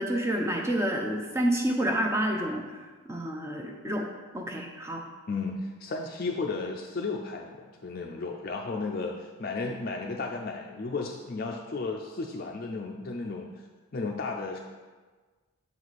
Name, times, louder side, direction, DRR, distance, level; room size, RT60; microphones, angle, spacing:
voice 1, 0.0-4.1 4.3-5.0, right 1 dB, 10° right, 2 dB, 0.6 m, -29 dB
voice 2, 5.3-13.5 13.9-14.6, left 3 dB, 45° left, 0 dB, 0.4 m, -34 dB
7.1 x 4.7 x 4.1 m, 1.4 s
head